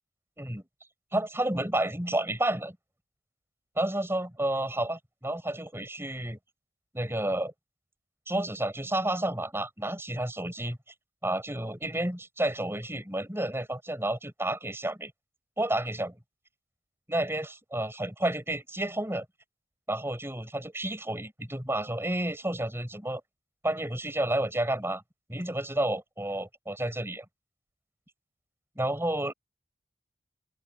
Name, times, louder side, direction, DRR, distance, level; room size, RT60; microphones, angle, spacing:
voice 1, 1.1-2.8 3.8-6.4 6.9-7.5 8.3-10.8 11.2-15.1 15.6-16.2 17.1-19.3 19.9-23.2 23.6-25.0 25.3-27.2 28.8-29.3, right 1 dB, 15° right, 7.4 m, -30 dB
open air
head